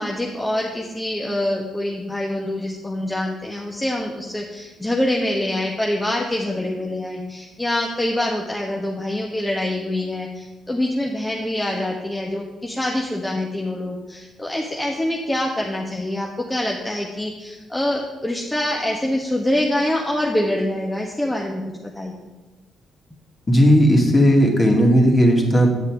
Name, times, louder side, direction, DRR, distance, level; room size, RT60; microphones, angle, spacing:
voice 1, 0.0-22.3, left 1 dB, 15° left, -1 dB, 1.2 m, -25 dB
voice 2, 23.5-25.7, equal, 30° left, 0 dB, 2.3 m, -15 dB
9.2 x 6.4 x 4.9 m, 1.1 s
supercardioid pair, 55°, 0 cm